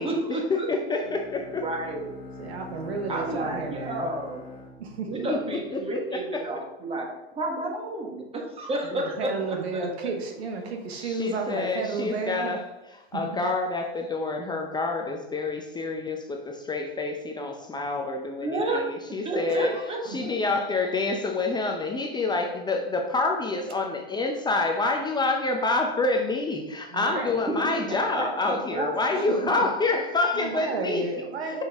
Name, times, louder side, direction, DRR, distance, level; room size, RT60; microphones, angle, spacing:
voice 1, 0.0-0.7 1.6-2.1 3.1-4.4 5.1-7.1 7.3-9.3 18.4-18.8 19.2-20.0 27.5-29.2 29.5-29.6, right 2 dB, 20° right, 0 dB, 1.6 m, -31 dB
voice 2, 0.7-1.6 5.3-5.4 5.7-6.4 11.0-31.1 31.4-31.6, left 3 dB, 15° left, 3 dB, 0.6 m, -28 dB
Bowed string instrument, 1.0-6.0, left 3 dB, 55° left, 1.4 m, -44 dB
voice 3, 2.4-4.1 4.8-5.3 8.8-12.5 19.7-20.2 26.9-27.3 30.3-31.6, right 4 dB, 85° right, 3 dB, 1.3 m, -32 dB
6.0 x 5.4 x 3.5 m, 1.0 s
hypercardioid pair, 110°, 31 cm